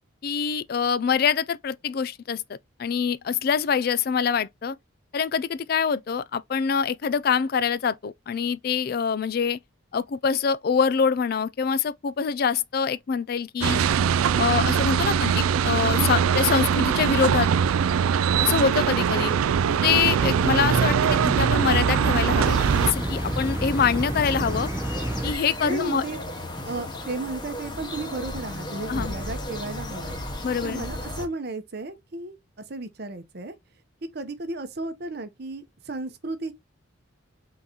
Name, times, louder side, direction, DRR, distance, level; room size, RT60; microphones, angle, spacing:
voice 1, 0.2-4.8 5.1-9.6 9.9-13.8 14.4-17.5 18.4-19.3 19.7-24.7 25.2-26.0 28.9-29.1 30.4-30.8, left 6 dB, 45° left, 0.3 m, -25 dB
sound 1, 13.6-22.9, right 7 dB, 90° right, 0.3 m, -22 dB
sound 2, 20.2-25.4, right 1 dB, 15° right, 0.5 m, -29 dB
sound 3, 22.4-31.3, left 1 dB, 20° left, 0.8 m, -35 dB
voice 2, 25.6-26.2 26.6-30.2 30.6-32.4 32.7-33.5 34.0-36.5, right 2 dB, 50° right, 0.8 m, -34 dB
3.8 x 3.8 x 2.9 m
head